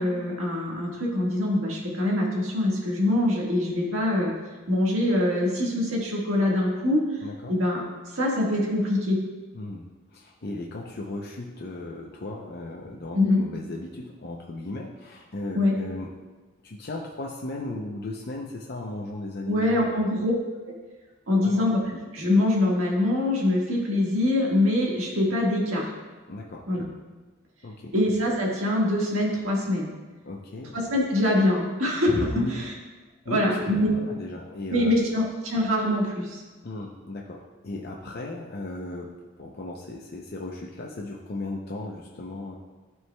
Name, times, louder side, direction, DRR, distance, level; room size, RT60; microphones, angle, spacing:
voice 1, 0.0-4.3 4.7-7.0 7.5-7.8 8.1-9.2 13.1-13.4 15.5-15.7 19.4-20.3 20.7-20.8 21.3-25.9 26.7-26.8 27.9-29.9 30.7-32.7 33.3-33.9 34.7-36.4, left 1 dB, 85° right, -2 dB, 1.6 m, -24 dB
voice 2, 7.2-7.5 9.5-16.1 16.6-20.0 21.4-21.7 26.3-26.7 27.6-27.9 30.2-30.7 32.3-32.7 33.3-35.0 36.6-42.6, left 2 dB, 50° left, -1 dB, 0.6 m, -36 dB
12.5 x 4.7 x 2.2 m, 1.3 s
head